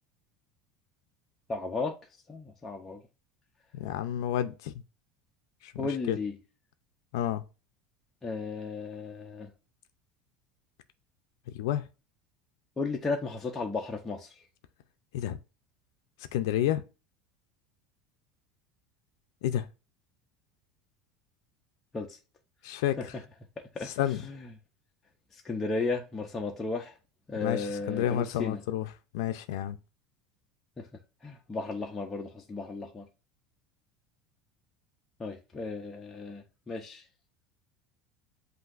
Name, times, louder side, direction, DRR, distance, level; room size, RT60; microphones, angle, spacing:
voice 1, 1.5-2.0 2.3-3.0 5.8-6.4 8.2-9.5 12.8-14.3 21.9-22.2 23.0-23.1 23.8-23.9 24.2-24.5 25.4-26.9 27.3-28.6 30.8-30.9 31.2-33.1 35.2-37.0, left 3 dB, 10° left, 0.6 m, -34 dB
voice 2, 3.7-4.7 5.6-6.2 7.1-7.4 11.5-11.8 15.1-15.4 16.3-16.8 19.4-19.6 22.6-23.1 23.8-24.2 27.4-28.9 29.1-29.8, left 11 dB, 90° left, 0.4 m, -30 dB
7.9 x 2.6 x 2.4 m
cardioid pair, 170°, 2 cm